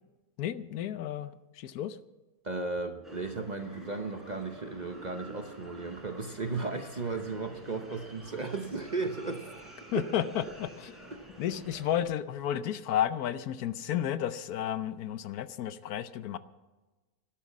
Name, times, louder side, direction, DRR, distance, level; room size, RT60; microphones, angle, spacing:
voice 1, 0.4-2.0 9.9-10.9 11.4-16.4, left 10 dB, 75° left, 13 dB, 1.2 m, -32 dB
voice 2, 2.4-9.5 9.9-10.1 11.1-11.2, right 3 dB, 35° right, 6 dB, 0.8 m, -35 dB
sound 1, 3.0-12.0, right 1 dB, ahead, 3.9 m, -49 dB
12.5 x 12.0 x 7.2 m, 1.2 s
omnidirectional pair, 1.6 m